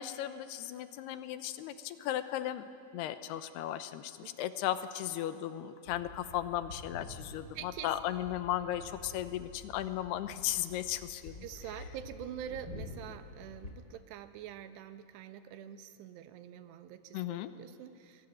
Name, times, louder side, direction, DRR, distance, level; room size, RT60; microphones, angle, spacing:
voice 1, 0.0-2.6 2.9-11.4 17.1-17.5, left 12 dB, 85° left, 11 dB, 2.9 m, -36 dB
sound 1, 5.8-13.7, left 3 dB, 30° left, 2.2 m, -49 dB
voice 2, 7.5-7.9 11.4-18.3, right 10 dB, 90° right, 10 dB, 3.3 m, -45 dB
24.5 x 22.0 x 9.2 m, 2.6 s
omnidirectional pair, 4.7 m